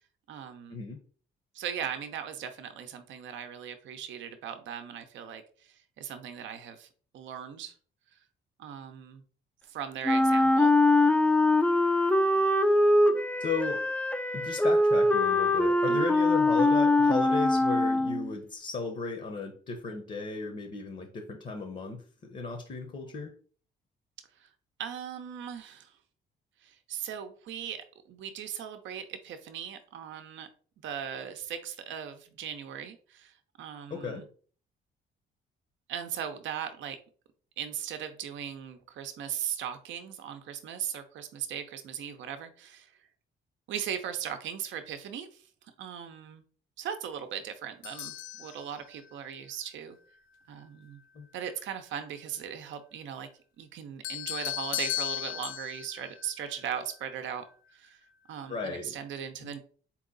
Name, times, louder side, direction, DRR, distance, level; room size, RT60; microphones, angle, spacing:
voice 1, 0.3-0.8 1.5-6.9 7.1-7.7 8.6-9.2 9.7-10.7 15.9-16.1 24.8-25.9 26.6-30.5 30.8-34.3 35.9-37.0 37.6-42.9 43.7-45.5 45.8-46.4 46.8-50.0 50.5-51.0 51.3-53.3 53.6-57.4 57.7-58.0 58.3-59.6, right 8 dB, 70° right, 8 dB, 0.6 m, -38 dB
Wind instrument woodwind instrument, 10.0-18.3, left 2 dB, 5° left, 0.4 m, -23 dB
voice 2, 13.4-13.8 14.3-23.3 33.9-34.2 51.1-51.3 58.5-58.9 59.4-59.5, left 4 dB, 40° left, 4 dB, 0.8 m, -35 dB
sound 1, 47.8-49.2 54.0-57.3, left 13 dB, 80° left, 0.5 m, -36 dB
3.9 x 2.9 x 3.8 m, 0.43 s
cardioid pair, 90°, 20 cm